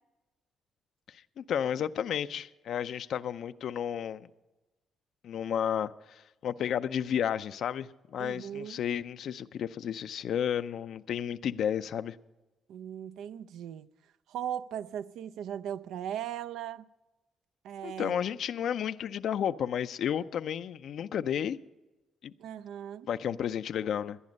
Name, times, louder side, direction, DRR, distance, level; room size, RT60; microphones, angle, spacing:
voice 1, 1.1-4.3 5.2-12.2 17.8-21.6 22.2-22.3 23.1-24.2, left 9 dB, 70° left, 0.4 m, -32 dB
voice 2, 8.2-8.8 12.7-13.9 14.3-16.9 17.6-18.2 22.4-23.1, right 10 dB, 80° right, 0.4 m, -38 dB
18.0 x 11.0 x 5.3 m
cardioid pair, 75°, 0 cm